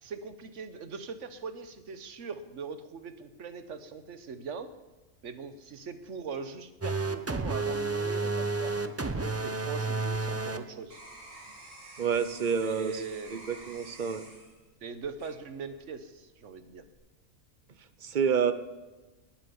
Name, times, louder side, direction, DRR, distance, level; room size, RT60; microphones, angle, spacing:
voice 1, 0.0-4.7 5.2-11.0 12.6-13.5 14.8-16.8, right 5 dB, 70° right, 11 dB, 1.3 m, -41 dB
sound 1, 6.8-10.6, right 3 dB, 20° right, 0.5 m, -31 dB
sound 2, 10.7-16.0 16.5-16.9, right 2 dB, 90° right, 3.4 m, -51 dB
voice 2, 12.0-13.0 13.3-14.2 18.0-18.5, right 6 dB, 45° right, 12 dB, 0.9 m, -28 dB
19.5 x 7.4 x 7.0 m, 1.1 s
omnidirectional pair, 1.3 m